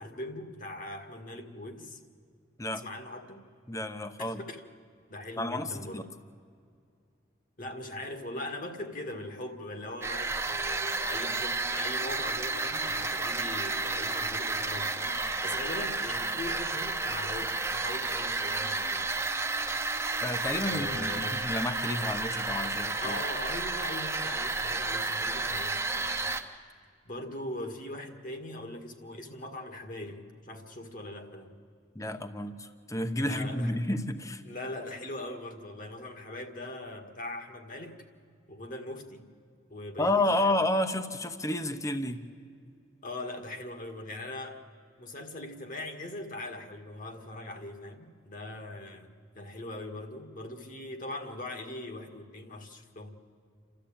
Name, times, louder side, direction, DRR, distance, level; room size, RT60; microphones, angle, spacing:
voice 1, 0.0-2.0 2.7-3.4 4.2-4.6 5.1-6.0 7.6-19.1 20.7-21.5 23.0-26.3 27.1-31.5 33.2-33.8 34.4-38.0 38.5-39.3 39.7-40.6 43.0-44.6 45.0-53.1, left 1 dB, 45° left, 5 dB, 1.9 m, -41 dB
voice 2, 3.7-4.4 5.4-6.0 20.2-23.2 31.9-34.4 40.0-42.2, left 1 dB, 15° left, 9 dB, 0.9 m, -31 dB
sound 1, 10.0-26.4, right 3 dB, 15° right, 1.0 m, -31 dB
29.0 x 13.5 x 8.8 m, 2.3 s
head